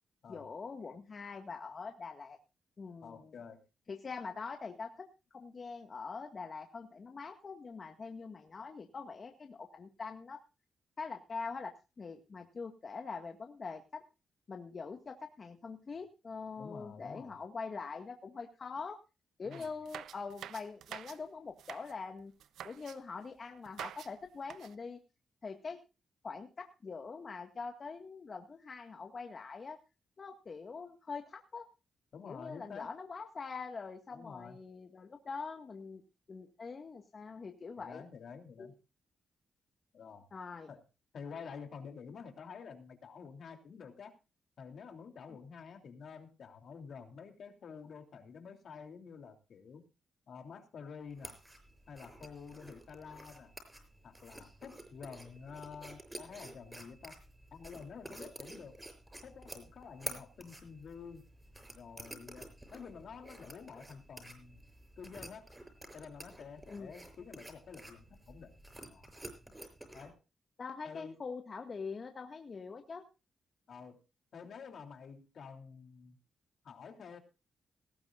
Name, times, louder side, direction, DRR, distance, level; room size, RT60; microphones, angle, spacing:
voice 1, 0.3-2.4 2.8-3.3 3.9-5.1 5.3-10.4 11.0-14.0 14.5-19.0 19.4-22.3 22.6-25.0 25.4-25.8 26.2-29.8 30.2-31.6 32.3-36.0 36.3-38.0 38.6-38.7 40.3-40.7 66.7-66.9 70.6-73.0, left 4 dB, 45° left, 4 dB, 1.9 m, -44 dB
voice 2, 3.0-3.6 16.5-17.3 19.4-19.7 32.1-32.9 34.1-34.6 37.8-38.7 39.9-40.3 40.7-40.8 41.1-44.1 44.6-49.8 50.3-51.4 51.9-53.5 54.0-57.2 57.5-58.8 59.2-61.2 61.7-64.6 65.0-65.5 65.9-68.5 68.9-69.1 69.9-70.2 70.8-71.2 73.7-74.0 74.3-76.2 76.6-77.2, left 6 dB, 70° left, 5 dB, 3.1 m, -49 dB
sound 1, 19.5-21.2 21.5-21.9 22.4-23.0 23.6-24.1 24.4-24.7, right 10 dB, 90° right, 0.7 m, -47 dB
sound 2, 51.1-70.1, right 1 dB, 15° right, 6.0 m, -50 dB
18.5 x 15.0 x 2.5 m, 0.30 s
cardioid pair, 70°, 0 cm